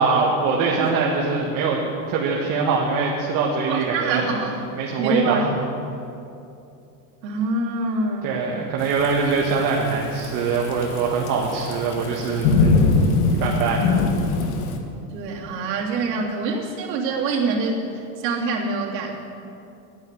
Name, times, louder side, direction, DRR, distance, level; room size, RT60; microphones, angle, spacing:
voice 1, 0.0-4.3 4.7-5.5 8.2-12.8 13.4-13.9, right 4 dB, 40° right, -2 dB, 1.6 m, -23 dB
voice 2, 3.7-4.6 5.0-5.4 7.2-8.5 15.1-19.1, right 3 dB, 75° right, -3 dB, 3.2 m, -25 dB
Thunderstorm / Rain, 8.8-14.8, left 3 dB, 60° left, 1.8 m, -22 dB
11.5 x 9.6 x 9.0 m, 2.7 s
supercardioid pair, 150°, 50 cm